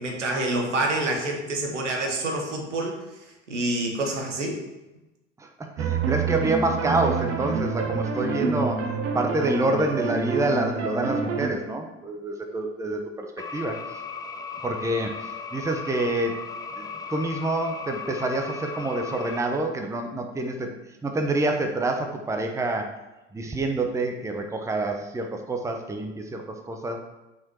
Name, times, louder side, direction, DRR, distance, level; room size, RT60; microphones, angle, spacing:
voice 1, 0.0-4.6, right 2 dB, 80° right, 1 dB, 1.4 m, -27 dB
voice 2, 5.4-8.9 9.1-13.8 14.6-16.4 16.7-20.7 21.0-22.9 23.3-27.0, right 2 dB, 10° right, 4 dB, 0.8 m, -27 dB
sound 1, 5.8-11.5, right 5 dB, 40° right, 1.1 m, -27 dB
sound 2, 13.4-19.4, left 5 dB, 10° left, 0.4 m, -36 dB
5.9 x 5.1 x 4.5 m, 1.0 s
figure-of-eight pair, 70°, 36 cm